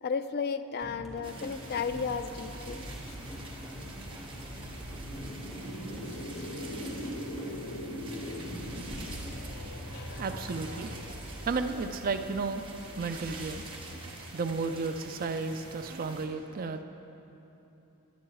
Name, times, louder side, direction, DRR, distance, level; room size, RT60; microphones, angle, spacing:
voice 1, 0.0-3.1 9.9-10.2, left 5 dB, 45° left, 10 dB, 0.4 m, -34 dB
sound 1, 0.8-9.4, equal, ahead, 1.5 m, -45 dB
sound 2, 1.2-16.3, right 2 dB, 25° right, 1.2 m, -47 dB
sound 3, 1.4-14.6, equal, 85° left, 1.3 m, -42 dB
voice 2, 9.6-13.7 13.9-16.8, right 4 dB, 40° right, 8 dB, 0.4 m, -34 dB
11.0 x 8.6 x 4.7 m, 3.0 s
head